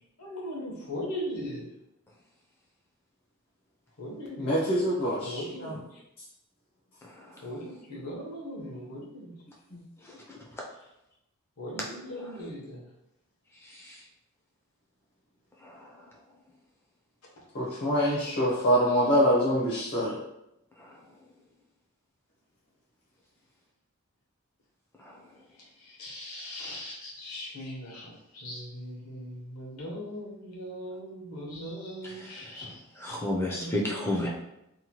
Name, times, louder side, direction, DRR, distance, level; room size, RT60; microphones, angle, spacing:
voice 1, 0.2-1.6 4.0-4.5 5.2-6.0 7.4-9.4 11.6-12.8 25.6-32.7 33.5-34.3, equal, 80° left, -4 dB, 1.0 m, -39 dB
voice 2, 4.4-5.7 9.7-9.8 17.5-20.2, equal, 50° left, -5 dB, 0.6 m, -25 dB
voice 3, 7.1-7.4 10.0-10.4 12.2-12.3 13.6-14.0 15.6-16.0 20.8-21.0 25.0-25.2 32.0-34.3, left 1 dB, 10° left, -2 dB, 0.4 m, -34 dB
2.8 x 2.2 x 2.9 m, 0.85 s
head